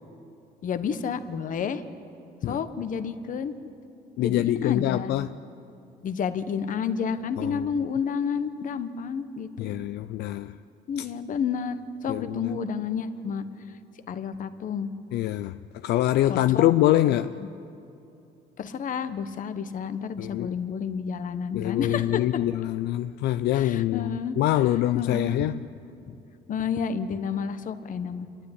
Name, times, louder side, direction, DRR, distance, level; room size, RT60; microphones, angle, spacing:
voice 1, 0.6-1.8 2.4-3.5 4.2-5.1 6.0-9.7 10.9-13.8 14.1-14.9 16.3-16.7 17.4-17.5 18.6-22.2 23.5-24.4 24.9-25.4 26.1-26.2 26.5-28.3, left 6 dB, 50° left, 1.3 m, -30 dB
voice 2, 4.2-5.4 7.4-7.7 9.6-10.6 11.0-11.1 12.1-12.6 15.1-17.3 20.2-20.5 21.5-25.6, left 14 dB, 75° left, 0.5 m, -25 dB
28.5 x 12.5 x 9.9 m
cardioid pair, 110°, 17 cm